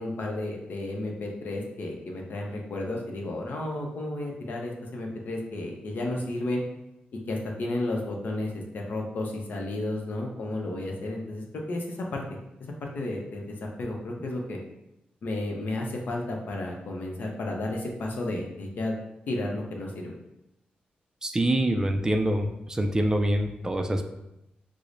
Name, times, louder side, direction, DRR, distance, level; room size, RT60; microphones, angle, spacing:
voice 1, 0.0-6.6 7.1-12.4 12.8-14.6 15.2-19.0 19.3-20.1, left 2 dB, 70° left, 0 dB, 0.6 m, -32 dB
voice 2, 21.2-24.0, right 1 dB, 20° right, 4 dB, 0.3 m, -25 dB
4.7 x 2.0 x 2.6 m, 0.88 s
cardioid pair, 95°, 3 cm